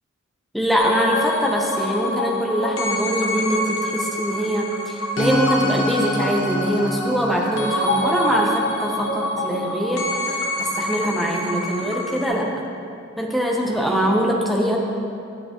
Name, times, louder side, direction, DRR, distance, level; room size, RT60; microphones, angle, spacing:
voice 1, 0.5-12.5 13.2-14.8, equal, ahead, -2 dB, 0.8 m, -23 dB
sound 1, 0.8-12.3, left 1 dB, 75° left, 1.1 m, -26 dB
11.0 x 8.0 x 3.0 m, 2.5 s
head